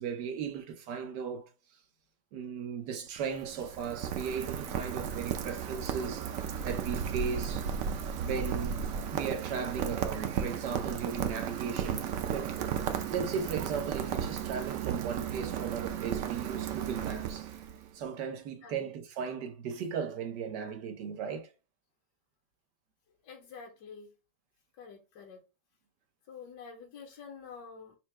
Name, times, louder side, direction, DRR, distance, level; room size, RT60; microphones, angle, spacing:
voice 1, 0.0-1.5 2.3-6.4 6.6-7.7 8.2-8.8 9.1-12.7 13.1-17.5 17.9-21.5, right 6 dB, 90° right, 1.4 m, -36 dB
Rain, 3.1-17.9, right 8 dB, 65° right, 0.9 m, -34 dB
voice 2, 18.6-19.0 23.2-24.1 24.8-25.4 26.3-28.0, left 6 dB, 80° left, 1.4 m, -48 dB
4.4 x 2.1 x 4.5 m
omnidirectional pair, 1.8 m